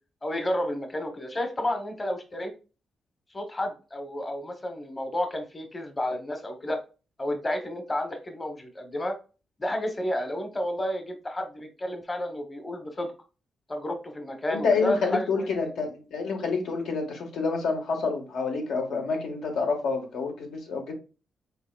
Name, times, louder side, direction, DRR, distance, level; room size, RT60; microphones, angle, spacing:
voice 1, 0.2-2.5 3.3-6.8 7.2-9.1 9.6-13.1 13.7-15.5, left 1 dB, 25° left, 6 dB, 0.9 m, -31 dB
voice 2, 14.5-20.9, left 4 dB, 85° left, 2 dB, 1.4 m, -28 dB
5.5 x 3.7 x 2.3 m, 0.33 s
cardioid pair, 80°, 0 cm